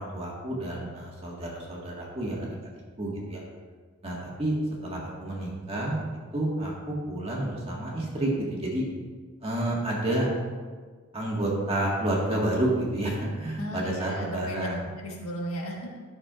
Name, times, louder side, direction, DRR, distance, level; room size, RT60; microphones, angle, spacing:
voice 1, 0.0-2.5 3.0-3.4 4.0-4.6 4.8-6.0 6.3-8.8 9.4-10.3 11.1-14.9, right 1 dB, 30° right, -4 dB, 1.7 m, -29 dB
voice 2, 13.6-14.7 15.0-16.0, equal, 90° left, -1 dB, 1.5 m, -35 dB
13.0 x 6.4 x 2.5 m, 1.5 s
head